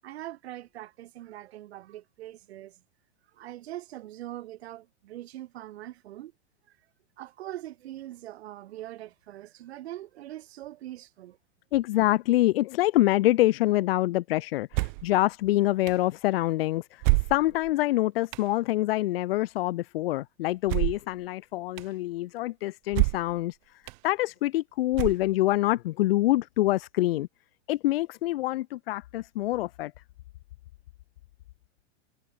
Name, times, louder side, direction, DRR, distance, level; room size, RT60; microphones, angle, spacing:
voice 1, 0.0-2.8 3.3-6.3 6.7-6.8 7.2-11.4, right 14 dB, 65° right, 7.5 m, -42 dB
voice 2, 11.7-17.0 17.3-23.6 24.0-27.3 27.7-29.9, left 16 dB, 55° left, 1.3 m, -26 dB
sound 1, 14.7-15.1 15.9-16.0 17.0-17.7 18.3-18.5 20.7-21.1 21.8-21.9 22.9-23.4 23.9-24.0 24.9-25.5, right 30 dB, 40° right, 3.2 m, -27 dB
supercardioid pair, 160°, 34 cm